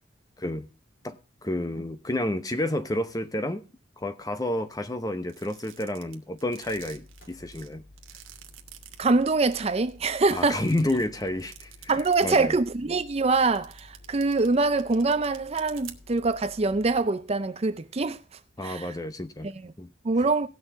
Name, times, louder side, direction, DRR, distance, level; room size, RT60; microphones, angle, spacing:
voice 1, 1.4-3.6 4.0-7.8 10.3-11.7 12.2-12.5 18.6-19.5 19.8-19.9, left 1 dB, 20° left, 0.8 m, -30 dB
sound 1, 5.3-9.0 9.5-9.6 9.9-12.4 12.7-12.8 13.5-16.2, right 12 dB, 85° right, 1.2 m, -47 dB
sound 2, 6.6-17.0, left 2 dB, 65° left, 3.3 m, -52 dB
voice 2, 9.0-10.6 11.9-18.2 18.6-19.0 19.4-19.7 20.0-20.5, right 3 dB, 30° right, 0.5 m, -24 dB
18.0 x 6.4 x 3.6 m
head